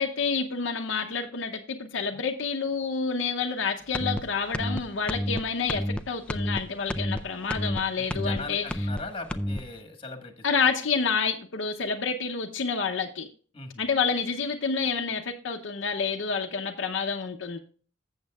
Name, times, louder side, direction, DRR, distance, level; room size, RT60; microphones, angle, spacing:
voice 1, 0.0-8.6 10.4-13.3 13.8-17.6, left 5 dB, 65° left, 3 dB, 0.7 m, -28 dB
sound 1, 3.9-4.2 4.5-4.8 5.1-5.4 5.7-6.0 6.3-6.6 6.9-7.2 7.5-7.8 8.1-8.4 8.7-9.0 9.3-9.6, equal, 5° left, 0.4 m, -29 dB
voice 2, 8.0-10.4 13.5-13.8, left 3 dB, 30° left, 5 dB, 1.5 m, -39 dB
14.5 x 7.3 x 2.3 m, 0.41 s
head